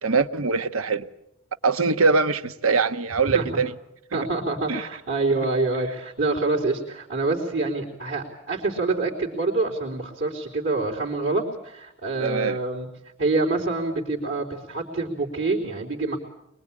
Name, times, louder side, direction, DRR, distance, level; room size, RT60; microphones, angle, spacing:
voice 1, 0.0-1.1 1.6-3.7 4.1-4.2 4.7-4.9 12.2-12.6, right 4 dB, 80° right, 1.1 m, -22 dB
voice 2, 4.1-12.9 13.2-16.2, right 3 dB, 65° right, 3.9 m, -26 dB
23.5 x 23.5 x 8.8 m
head